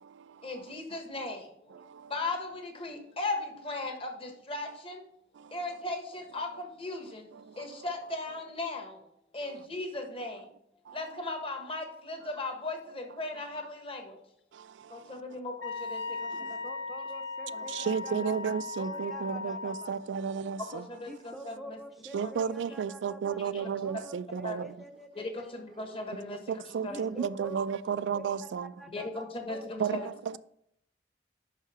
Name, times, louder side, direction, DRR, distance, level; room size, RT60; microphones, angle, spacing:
voice 1, 0.4-1.8 2.1-5.1 5.5-7.3 7.5-9.1 9.3-10.5 10.9-14.2 14.9-16.6 17.5-17.6 18.1-18.3 20.7-21.8 22.2-22.3 23.5-23.6 24.4-24.6 25.1-27.0 28.9-30.1, left 2 dB, 30° left, 1.3 m, -37 dB
Wind instrument woodwind instrument, 15.6-20.0, left 3 dB, 80° left, 0.8 m, -38 dB
voice 2, 16.3-20.4 21.0-25.9 26.8-27.5 28.1-30.4, right 1 dB, ahead, 0.6 m, -48 dB
voice 3, 17.7-20.9 22.1-24.7 26.5-28.7 29.8-30.4, right 7 dB, 80° right, 0.3 m, -32 dB
5.8 x 5.5 x 6.1 m
head